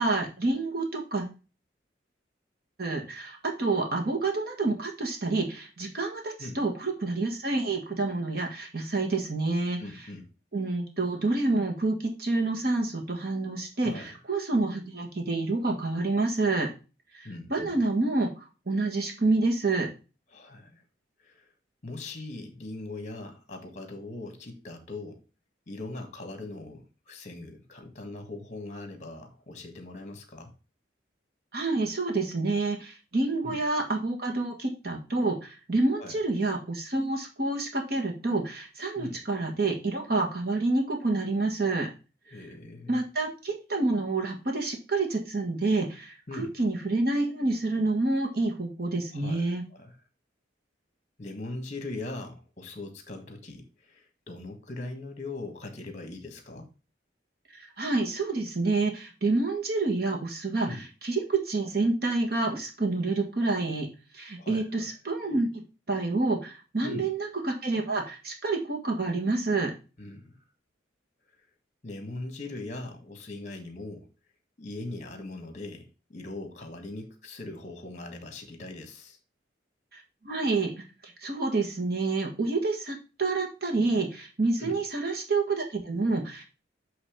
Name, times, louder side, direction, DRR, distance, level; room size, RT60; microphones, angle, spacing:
voice 1, 0.0-1.3 2.8-9.8 10.5-16.7 17.1-19.9 31.5-41.9 42.9-49.6 57.5-63.9 64.1-65.6 65.9-69.7 79.9-86.6, right 3 dB, 50° right, 1.6 m, -28 dB
voice 2, 9.8-10.2 13.8-14.2 17.2-17.8 20.3-20.8 21.2-21.5 21.8-25.2 25.7-30.5 33.4-33.6 36.0-36.2 38.9-39.2 42.3-43.0 46.3-46.5 49.1-50.0 51.2-56.7 60.6-60.8 64.4-64.7 66.8-67.1 70.0-70.4 71.8-74.1 74.6-79.2 84.6-84.8, left 2 dB, 40° left, 1.4 m, -40 dB
8.0 x 3.2 x 4.9 m
head